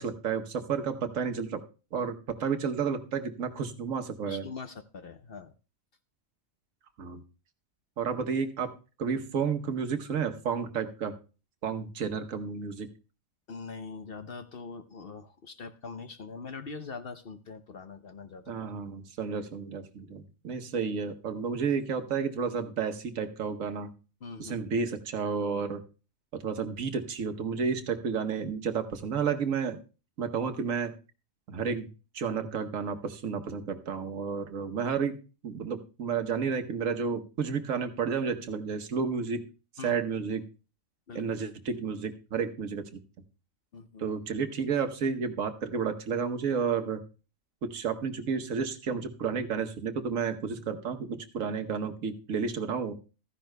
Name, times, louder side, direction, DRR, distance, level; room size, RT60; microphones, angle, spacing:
voice 1, 0.0-1.6 1.9-4.4 7.0-7.2 8.0-8.7 9.0-11.1 11.6-12.9 18.5-23.9 24.4-25.8 26.4-29.8 30.2-30.9 31.5-31.9 32.1-35.2 35.4-39.4 39.8-40.4 41.1-43.0 44.0-47.0 47.6-52.9, right 6 dB, 70° right, 6 dB, 1.4 m, -31 dB
voice 2, 4.2-5.5 13.5-18.7 24.2-24.6 39.8-40.0 41.1-41.2 43.7-44.1, left 4 dB, 55° left, 9 dB, 0.7 m, -42 dB
15.0 x 14.0 x 2.2 m, 0.34 s
omnidirectional pair, 1.4 m